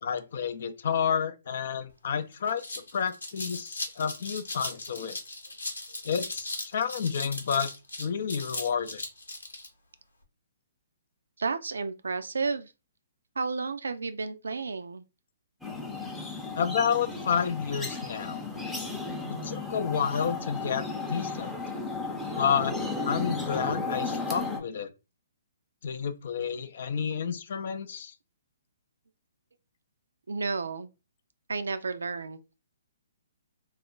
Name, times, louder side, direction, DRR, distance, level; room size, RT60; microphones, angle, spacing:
voice 1, 0.0-5.2 6.0-7.7 8.0-9.0 16.6-18.4 19.3-21.6 22.4-22.8 23.0-24.9 25.8-28.1, left 7 dB, 60° left, 0.4 m, -30 dB
sound 1, 1.9-2.0 2.3-9.7, left 2 dB, 90° left, 0.8 m, -38 dB
voice 2, 11.4-12.7 13.4-15.0 30.3-30.9 31.5-32.4, right 4 dB, 80° right, 0.4 m, -32 dB
sound 2, 15.6-24.6, left 3 dB, 5° left, 0.6 m, -34 dB
2.4 x 2.0 x 3.7 m
hypercardioid pair, 135°, 0 cm